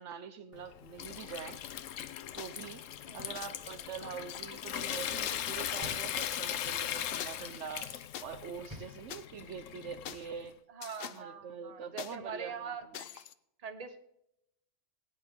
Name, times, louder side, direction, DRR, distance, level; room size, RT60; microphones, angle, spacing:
voice 1, 0.0-1.6 2.3-2.8 3.1-10.5 11.1-13.0, right 6 dB, 70° right, 9 dB, 1.0 m, -44 dB
Water tap faucet / Sink (filling or washing) / Trickle dribble, 0.5-10.5, left 10 dB, 85° left, 1.1 m, -39 dB
sound 1, 2.4-2.7 3.3-3.5 4.3-4.4 5.3-6.4 7.2-7.3 8.1-8.2 9.1-9.3 10.1-10.3 10.8-11.2 12.0-12.2 12.9-13.3, left 10 dB, 60° left, 0.7 m, -44 dB
sound 2, 5.8-6.7 8.7-9.6, right 1 dB, 15° right, 1.3 m, -49 dB
voice 2, 10.7-13.3 13.6-14.0, right 6 dB, 35° right, 9 dB, 1.0 m, -43 dB
17.5 x 9.6 x 3.6 m, 0.79 s
omnidirectional pair, 1.3 m